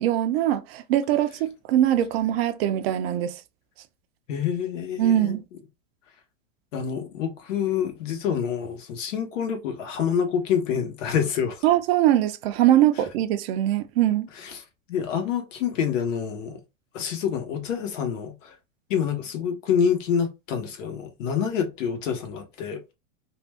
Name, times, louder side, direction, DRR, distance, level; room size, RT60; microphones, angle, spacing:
voice 1, 0.0-3.4 5.0-5.4 11.6-14.3, right 12 dB, 55° right, 0.5 m, -22 dB
voice 2, 4.3-5.4 6.7-11.6 14.4-14.6 14.9-16.6 16.9-18.5 18.9-22.8, left 7 dB, 75° left, 1.0 m, -27 dB
2.6 x 2.1 x 3.3 m
supercardioid pair, 135°, 38 cm